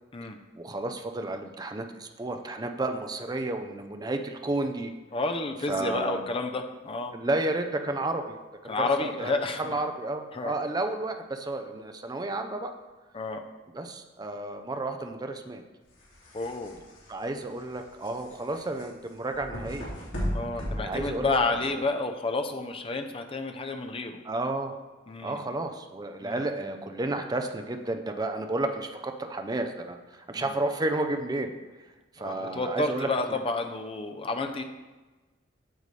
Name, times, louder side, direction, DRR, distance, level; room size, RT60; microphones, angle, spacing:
voice 1, 0.6-4.9 5.7-6.2 7.1-8.4 8.6-12.7 13.7-15.6 17.1-19.9 20.8-21.4 24.2-24.8 25.2-31.5 32.2-33.1, right 2 dB, 20° right, 5 dB, 0.5 m, -32 dB
voice 2, 5.1-7.1 8.7-9.8 10.3-10.5 13.1-13.4 16.3-16.8 20.3-24.2 25.1-25.5 26.2-26.4 30.4-30.5 32.2-34.6, left 3 dB, 30° left, 5 dB, 0.6 m, -30 dB
sound 1, 15.9-21.8, equal, 85° left, 2.5 m, -37 dB
9.0 x 6.9 x 3.3 m, 1.2 s
head